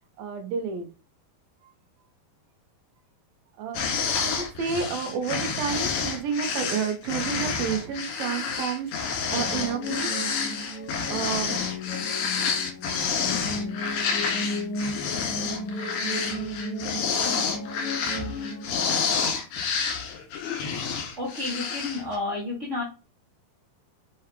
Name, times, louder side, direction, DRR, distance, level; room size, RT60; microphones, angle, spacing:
voice 1, 0.2-0.9 1.6-1.7 3.5-10.6 11.1-11.6, right 6 dB, 70° right, 5 dB, 2.9 m, -31 dB
sound 1, 3.7-22.2, left 6 dB, 75° left, 3.6 m, -29 dB
sound 2, 9.3-18.7, left 1 dB, 50° left, 3.0 m, -34 dB
voice 2, 21.2-22.8, left 2 dB, 30° right, -6 dB, 1.4 m, -30 dB
7.5 x 5.6 x 3.0 m, 0.32 s
omnidirectional pair, 4.6 m